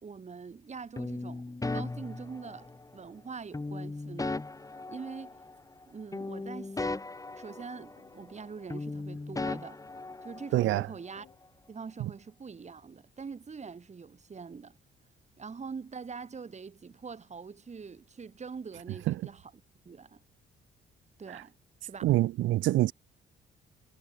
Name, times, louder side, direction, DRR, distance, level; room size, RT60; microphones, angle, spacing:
voice 1, 0.0-4.4 4.9-5.4 5.9-7.1 7.3-9.8 10.2-11.3 11.7-14.8 15.4-19.4 19.8-20.2 21.2-21.5 21.8-22.1, right 5 dB, 35° right, 3.3 m, -44 dB
sound 1, 1.0-2.9 3.5-5.8 6.1-8.4 8.7-10.8, left 3 dB, 15° left, 1.8 m, -37 dB
sound 2, 6.1-11.4, left 12 dB, 75° left, 7.2 m, -63 dB
voice 2, 10.5-10.9 19.1-19.2 21.3-21.4 22.0-22.9, right 16 dB, 75° right, 0.4 m, -25 dB
cardioid pair, 90°, 20 cm